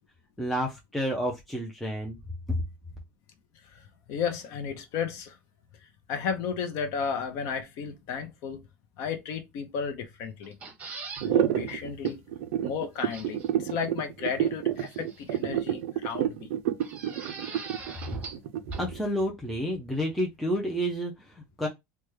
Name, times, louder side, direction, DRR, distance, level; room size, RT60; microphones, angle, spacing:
voice 1, 0.4-2.2 2.5-2.6 18.8-21.7, equal, ahead, 0.3 m, -30 dB
voice 2, 3.6-5.4 5.8-8.6 9.0-10.6 11.2-12.2 12.6-16.5, left 6 dB, 50° left, 0.6 m, -33 dB
sound 1, 10.4-11.3 11.7-11.8 12.1-12.2 13.1-13.5 14.8-15.4 16.8-18.5 18.7-18.8, right 4 dB, 20° right, 0.8 m, -42 dB
sound 2, 11.2-19.0, right 12 dB, 80° right, 0.4 m, -28 dB
3.3 x 2.1 x 3.0 m
cardioid pair, 165°, 7 cm